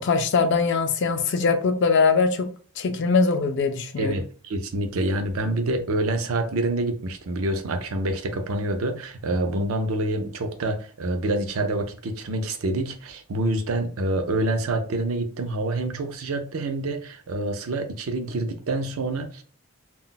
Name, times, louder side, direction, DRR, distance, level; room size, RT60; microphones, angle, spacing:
voice 1, 0.0-2.5 2.8-4.2, left 4 dB, 55° left, 0.4 m, -22 dB
voice 2, 4.0-19.4, right 2 dB, 75° right, 0.5 m, -27 dB
2.2 x 2.0 x 3.8 m
head